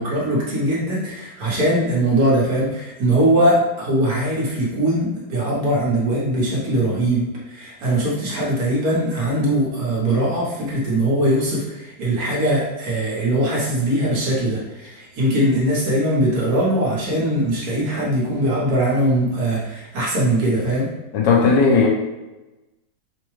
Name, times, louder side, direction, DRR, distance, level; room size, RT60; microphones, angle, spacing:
voice 1, 0.0-20.9, right 1 dB, 60° right, -5 dB, 1.4 m, -21 dB
voice 2, 21.1-21.9, left 4 dB, 75° left, -1 dB, 1.3 m, -15 dB
4.4 x 2.2 x 3.1 m, 1.1 s
omnidirectional pair, 2.0 m